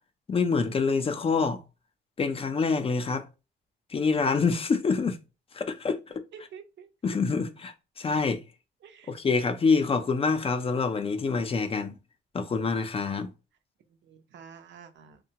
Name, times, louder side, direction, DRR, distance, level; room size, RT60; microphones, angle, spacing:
voice 1, 0.3-1.6 2.2-3.3 3.9-5.2 5.5-6.0 7.0-8.4 9.1-11.9 12.3-13.3, left 4 dB, 30° left, 0.4 m, -26 dB
voice 2, 6.3-6.9 8.8-9.1 14.0-15.2, right 7 dB, 65° right, 0.6 m, -48 dB
2.7 x 2.1 x 2.8 m
cardioid pair, 90°, 20 cm